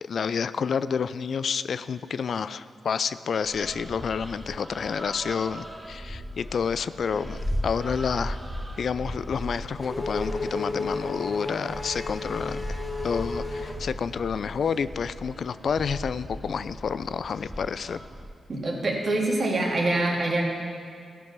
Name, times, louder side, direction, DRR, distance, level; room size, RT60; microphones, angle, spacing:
voice 1, 0.0-8.4 8.8-12.6 13.0-18.0, left 6 dB, 65° left, 15 dB, 0.3 m, -29 dB
sound 1, 3.4-18.3, equal, 20° right, 1.4 m, -37 dB
Race car auto racing / Accelerating revving vroom, 9.2-14.5, left 3 dB, 30° left, 1.5 m, -34 dB
voice 2, 18.5-20.4, right 2 dB, 55° right, -2 dB, 2.2 m, -25 dB
15.0 x 5.2 x 6.0 m, 2.3 s
supercardioid pair, 45°, 0 cm